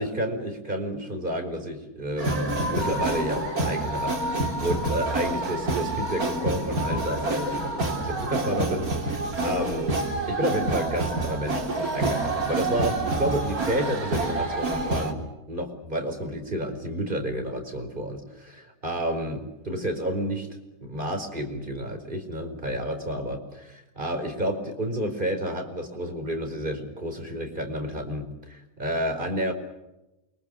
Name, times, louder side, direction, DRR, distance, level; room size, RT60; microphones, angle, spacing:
voice 1, 0.0-9.9 10.3-15.2 15.5-20.5 20.8-29.5, equal, 30° right, 5 dB, 5.0 m, -30 dB
sound 1, 2.2-15.1, right 2 dB, 65° right, 3.9 m, -28 dB
29.0 x 24.5 x 6.9 m, 0.96 s
omnidirectional pair, 1.7 m